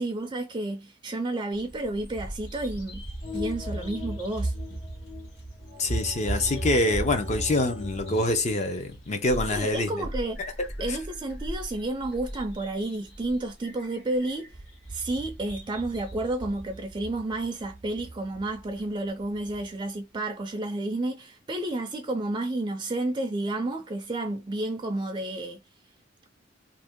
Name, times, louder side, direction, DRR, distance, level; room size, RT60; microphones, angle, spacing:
voice 1, 0.0-3.0 3.3-4.5 9.5-10.4 10.8-14.5 14.9-25.6, right 2 dB, 25° right, 0.4 m, -31 dB
Bird vocalization bird call bird song, 1.5-19.7, right 1 dB, 85° left, 1.8 m, -38 dB
sound 1, 3.2-8.2, left 3 dB, 70° left, 1.4 m, -39 dB
voice 2, 5.8-10.1 10.9-11.0, left 2 dB, 40° left, 0.6 m, -25 dB
2.8 x 2.6 x 3.5 m
head